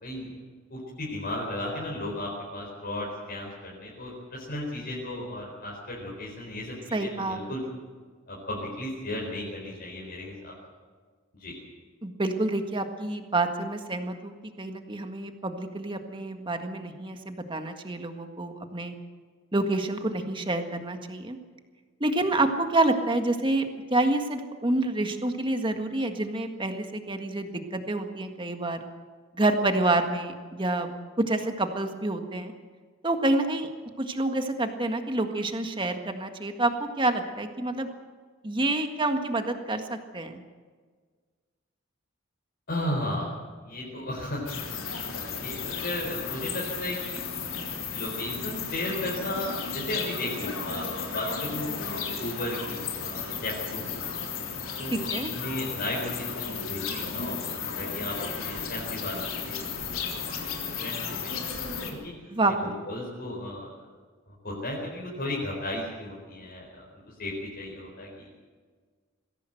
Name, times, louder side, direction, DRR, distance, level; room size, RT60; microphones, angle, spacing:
voice 1, 0.0-0.4 0.7-7.6 8.3-10.5 11.4-11.5 42.7-43.3 43.7-44.5 45.3-47.2 47.9-54.0 54.8-59.6 59.9-61.3 61.6-62.1 62.6-63.7 64.3-66.9 67.2-68.1, left 1 dB, 50° left, -4 dB, 4.4 m, -35 dB
voice 2, 6.9-7.4 12.0-19.0 19.5-21.4 22.0-28.8 29.3-30.9 31.2-32.5 33.0-33.7 34.0-37.9 38.4-40.4 54.9-55.3 62.3-62.8, right 2 dB, 25° right, 6 dB, 1.7 m, -28 dB
sound 1, 44.5-61.9, left 5 dB, 85° left, 3.5 m, -34 dB
21.0 x 16.0 x 7.9 m, 1.5 s
head